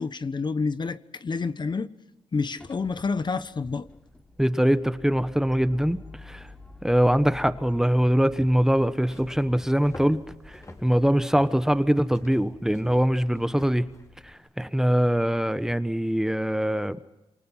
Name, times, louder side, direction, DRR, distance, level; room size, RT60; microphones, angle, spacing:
voice 1, 0.0-1.9 2.3-3.9, left 4 dB, 45° left, 1.2 m, -28 dB
sound 1, 2.6-14.3, left 2 dB, 10° left, 3.5 m, -49 dB
voice 2, 4.4-6.0 6.3-6.4 6.8-10.2 10.8-13.9 14.6-17.0, equal, 5° right, 1.2 m, -22 dB
sound 2, 8.9-14.1, left 2 dB, 30° left, 4.3 m, -48 dB
28.0 x 24.0 x 5.7 m
cardioid pair, 65°, 11 cm